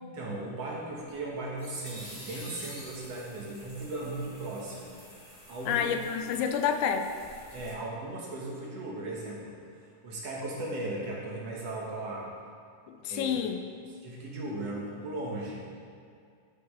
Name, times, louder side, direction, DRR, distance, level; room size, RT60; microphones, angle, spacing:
voice 1, 0.0-5.0 5.3-5.9 7.5-12.3 13.1-13.4 14.0-15.7, right 2 dB, 60° right, -4 dB, 2.2 m, -37 dB
sound 1, 1.0-7.7, equal, 40° left, 0.4 m, -49 dB
voice 2, 5.7-7.1 12.9-13.6, left 7 dB, 85° left, 7 dB, 2.0 m, -29 dB
11.0 x 5.7 x 4.9 m, 2.2 s
omnidirectional pair, 3.6 m